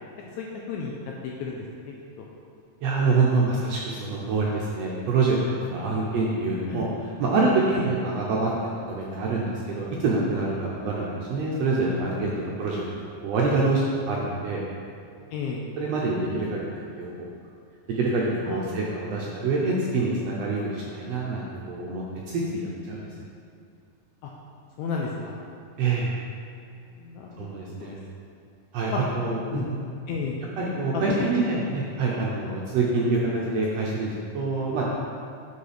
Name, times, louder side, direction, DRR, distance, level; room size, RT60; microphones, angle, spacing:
voice 1, 0.4-2.2 5.7-6.1 6.7-6.9 7.7-7.9 12.2-12.5 15.3-15.6 18.5-18.8 24.2-24.3 24.8-25.3 26.9-27.5 27.8-28.0 28.9-29.0 29.5-29.7 30.1-30.4 30.9-31.3, left 5 dB, 80° left, -1 dB, 1.7 m, -33 dB
voice 2, 2.8-5.4 5.7-6.9 7.2-14.6 15.8-17.1 17.9-23.1 25.8-26.1 27.4-28.0 28.7-29.8 30.6-34.8, right 3 dB, 80° right, -4 dB, 1.4 m, -26 dB
6.5 x 5.5 x 5.0 m, 2.5 s
omnidirectional pair, 3.8 m